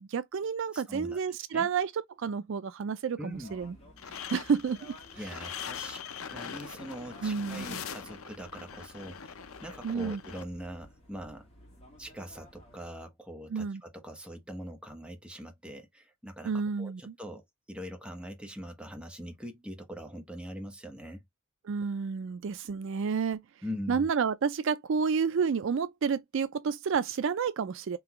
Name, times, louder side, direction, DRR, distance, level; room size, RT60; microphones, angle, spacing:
voice 1, 0.0-3.7 4.3-4.9 7.2-7.8 9.8-10.2 13.5-13.8 16.4-17.2 21.7-23.4 23.9-28.0, right 6 dB, 60° right, 0.4 m, -30 dB
voice 2, 0.7-1.2 1.5-1.7 3.2-3.6 5.2-6.0 6.3-11.5 12.0-16.5 16.8-21.2 23.6-24.1, equal, 5° right, 1.0 m, -42 dB
sound 1, 3.3-12.9, equal, 30° left, 2.2 m, -55 dB
sound 2, 4.0-10.4, left 7 dB, 70° left, 0.6 m, -42 dB
3.9 x 3.3 x 2.9 m
head